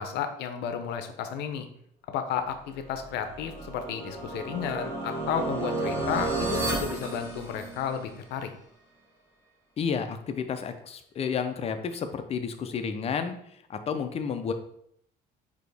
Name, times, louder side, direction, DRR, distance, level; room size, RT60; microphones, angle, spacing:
voice 1, 0.0-1.7 2.1-8.5, left 8 dB, 80° left, 7 dB, 0.6 m, -32 dB
sound 1, 2.9-8.1, right 2 dB, 15° right, 1.4 m, -32 dB
voice 2, 9.8-14.5, left 6 dB, 35° left, 8 dB, 0.5 m, -31 dB
4.1 x 2.9 x 3.3 m, 0.69 s
cardioid pair, 110°, 17 cm